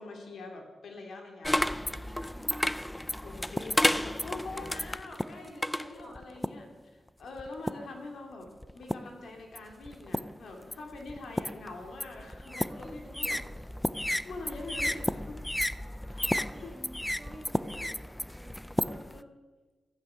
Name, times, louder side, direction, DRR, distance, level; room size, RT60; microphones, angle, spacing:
voice 1, 0.0-1.8 3.2-13.4 14.0-15.4 16.1-16.7 17.7-17.9 18.8-19.3, left 3 dB, 70° left, 2 dB, 2.8 m, -44 dB
sound 1, 1.4-6.7 7.4-8.0 8.6-9.2 9.6-19.2, left 1 dB, 5° left, 0.4 m, -32 dB
voice 2, 1.6-2.6 5.2-6.3 12.4-13.6 14.4-15.0 16.5-17.9 18.3-18.8, right 1 dB, 15° right, -3 dB, 6.3 m, -51 dB
15.5 x 14.0 x 5.8 m, 1.3 s
wide cardioid pair, 135°, 0 cm